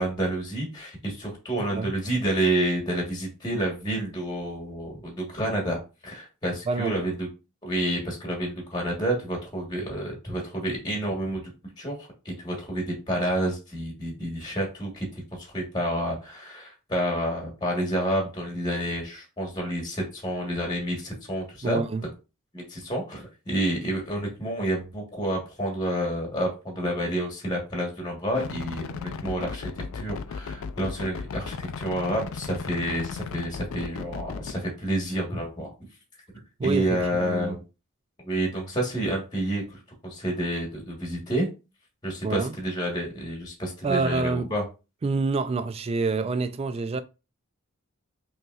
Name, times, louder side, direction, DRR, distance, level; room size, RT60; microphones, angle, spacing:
voice 1, 0.0-7.3 7.6-11.5 11.8-21.9 22.5-35.7 36.6-37.6 38.2-41.5 42.0-44.6, right 1 dB, 20° left, 1.2 m, -29 dB
voice 2, 1.6-1.9 6.7-7.0 21.6-22.0 36.6-37.6 42.2-42.6 43.8-44.5 45.0-47.0, right 3 dB, 25° right, 0.3 m, -27 dB
sound 1, 28.3-34.5, left 5 dB, 65° left, 0.4 m, -36 dB
5.3 x 3.0 x 2.3 m
head